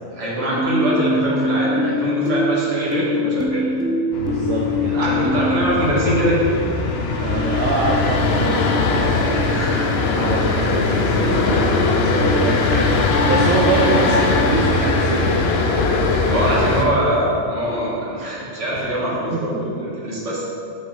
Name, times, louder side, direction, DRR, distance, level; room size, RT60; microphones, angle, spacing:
voice 1, 0.1-3.9 4.9-6.6 9.5-9.9 12.7-12.9 13.8-14.0 16.3-20.5, equal, 65° right, -6 dB, 2.0 m, -23 dB
sound 1, 0.6-5.7, left 1 dB, 5° right, 0.4 m, -22 dB
sound 2, 4.1-16.9, left 3 dB, 60° left, 0.8 m, -20 dB
voice 2, 4.1-5.3 7.2-9.5 10.1-12.8 13.2-15.3 19.3-19.9, right 3 dB, 80° right, -2 dB, 1.1 m, -25 dB
8.4 x 6.4 x 3.3 m, 2.6 s
omnidirectional pair, 1.4 m